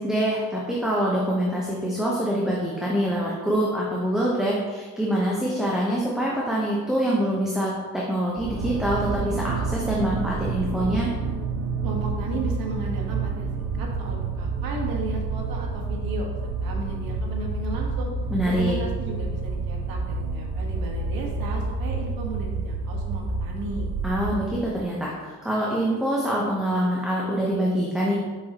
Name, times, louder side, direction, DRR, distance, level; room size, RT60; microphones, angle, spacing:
voice 1, 0.0-11.1 18.3-18.8 24.0-28.1, right 1 dB, ahead, -5 dB, 0.9 m, -25 dB
sound 1, 8.4-24.6, right 3 dB, 55° right, 0.7 m, -29 dB
voice 2, 11.8-16.3 16.6-18.1 18.4-23.9, right 3 dB, 85° right, 0 dB, 1.4 m, -35 dB
6.6 x 5.8 x 3.0 m, 1.5 s
cardioid pair, 125°, 34 cm